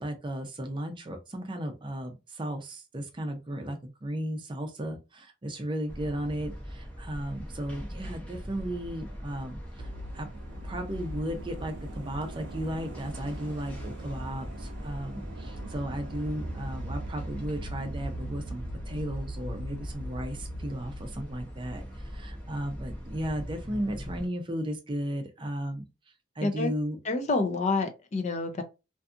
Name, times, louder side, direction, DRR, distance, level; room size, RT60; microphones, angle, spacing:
voice 1, 0.0-10.3 10.6-25.8 26.4-27.0, right 1 dB, 25° right, 0.5 m, -35 dB
sound 1, 5.9-24.3, equal, 5° left, 0.8 m, -41 dB
sound 2, 9.8-22.2 22.5-22.6, right 1 dB, 75° right, 0.5 m, -41 dB
voice 2, 26.4-26.7 27.0-28.6, left 3 dB, 40° left, 0.4 m, -28 dB
2.6 x 2.3 x 2.4 m
head